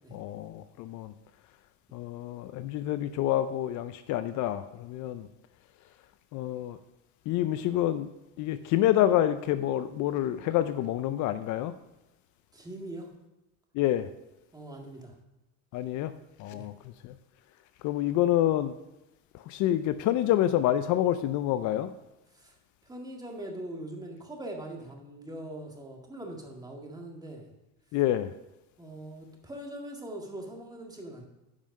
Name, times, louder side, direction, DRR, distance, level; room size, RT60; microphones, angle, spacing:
voice 1, 0.1-1.1 1.9-5.3 6.3-6.8 7.3-8.1 8.4-11.7 13.7-14.1 15.7-16.1 16.4-16.7 17.0-17.1 17.8-18.7 19.5-21.9 27.9-28.3, left 12 dB, 55° left, 0.5 m, -27 dB
voice 2, 12.5-13.1 14.5-15.1 16.5-16.7 22.3-22.6 22.8-27.5 28.8-31.3, right 1 dB, 10° right, 1.8 m, -42 dB
9.9 x 5.6 x 5.3 m
supercardioid pair, 115°, 35 cm